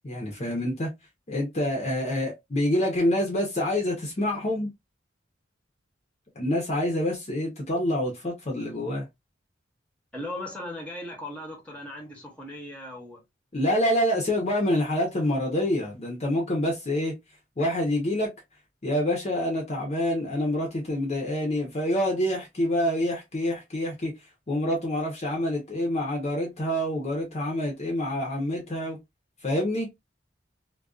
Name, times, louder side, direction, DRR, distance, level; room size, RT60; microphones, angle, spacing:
voice 1, 0.0-0.9 1.3-4.7 6.4-9.1 13.5-17.1 17.6-18.3 18.8-24.1 24.5-29.0 29.4-29.9, left 1 dB, 35° left, 0.7 m, -27 dB
voice 2, 10.1-13.2, left 1 dB, 5° left, 0.9 m, -38 dB
2.4 x 2.3 x 2.3 m
head